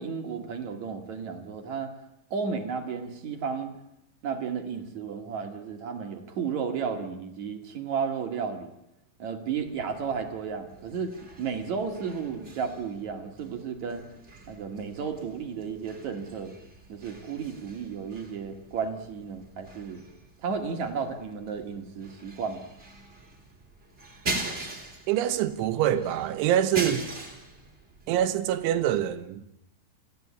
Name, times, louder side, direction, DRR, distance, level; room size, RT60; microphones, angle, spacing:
voice 1, 0.0-1.9 2.3-3.7 4.2-8.7 9.2-11.1 11.4-14.0 14.5-16.5 16.9-20.0 20.4-22.7, right 6 dB, 50° right, 2.6 m, -33 dB
sound 1, 9.5-29.2, right 2 dB, 15° right, 2.8 m, -42 dB
voice 2, 25.1-27.1 28.1-29.4, right 11 dB, 80° right, 3.6 m, -25 dB
28.0 x 15.0 x 8.7 m
omnidirectional pair, 5.5 m